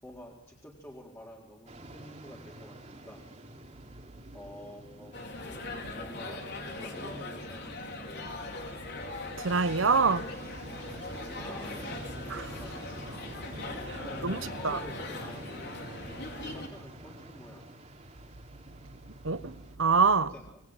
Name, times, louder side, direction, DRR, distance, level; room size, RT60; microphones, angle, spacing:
voice 1, 0.0-3.2 4.3-5.3 5.9-7.8 11.4-12.0 12.6-13.1 14.0-15.6 16.4-17.7 20.3-20.6, equal, 15° left, 4.0 m, -49 dB
sound 1, 1.7-19.8, right 1 dB, 35° right, 3.4 m, -47 dB
sound 2, 5.1-16.7, left 2 dB, 60° left, 4.7 m, -40 dB
voice 2, 9.4-10.3 12.3-12.6 13.8-14.8 19.2-20.3, right 4 dB, 80° right, 1.1 m, -26 dB
27.0 x 22.0 x 9.0 m
head